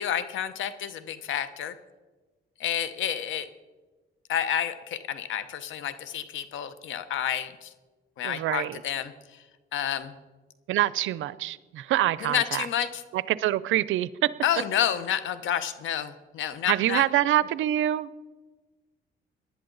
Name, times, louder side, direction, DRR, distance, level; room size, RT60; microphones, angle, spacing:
voice 1, 0.0-1.7 2.6-3.5 4.3-7.7 8.2-9.4 9.7-10.1 12.2-13.0 14.4-17.0, left 10 dB, 80° left, 13 dB, 0.9 m, -29 dB
voice 2, 8.2-8.8 10.7-12.7 13.1-14.1 16.7-18.1, right 13 dB, 80° right, 18 dB, 0.5 m, -25 dB
19.0 x 11.0 x 3.9 m, 1.3 s
cardioid pair, 90°, 20 cm